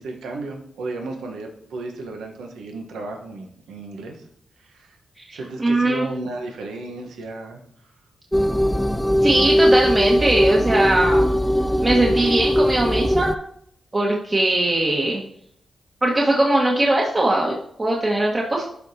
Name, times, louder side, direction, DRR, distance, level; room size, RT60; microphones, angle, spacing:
voice 1, 0.0-4.2 4.6-5.0 5.3-7.6, right 3 dB, 85° right, 2 dB, 1.1 m, -34 dB
voice 2, 5.2-6.1 9.2-11.4 11.8-13.3 13.9-15.2 16.0-18.6, right 1 dB, 35° right, -2 dB, 1.4 m, -20 dB
sound 1, 8.3-13.4, equal, 5° left, 0.4 m, -20 dB
11.5 x 4.5 x 2.8 m, 0.69 s
supercardioid pair, 45°, 0 cm